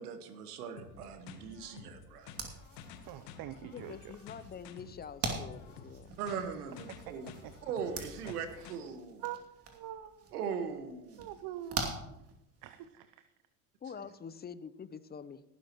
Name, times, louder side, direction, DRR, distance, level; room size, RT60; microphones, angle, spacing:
voice 1, 0.0-2.3 6.1-7.3 7.6-9.2 10.3-11.3 13.9-14.0, right 6 dB, 80° right, 8 dB, 1.6 m, -40 dB
sound 1, 0.8-8.8, left 6 dB, 65° left, 1.6 m, -52 dB
sound 2, 2.2-12.8, right 3 dB, 30° right, 2.7 m, -44 dB
voice 2, 3.1-4.1 6.9-7.2 7.4-7.5 8.2-8.8 9.2-10.3 11.2-12.0 12.6-13.2, right 12 dB, 50° right, 11 dB, 0.8 m, -45 dB
voice 3, 3.7-6.2 6.5-6.7 13.8-15.4, left 6 dB, 20° left, 15 dB, 0.7 m, -46 dB
18.0 x 11.5 x 3.1 m, 0.88 s
hypercardioid pair, 80°, 45 cm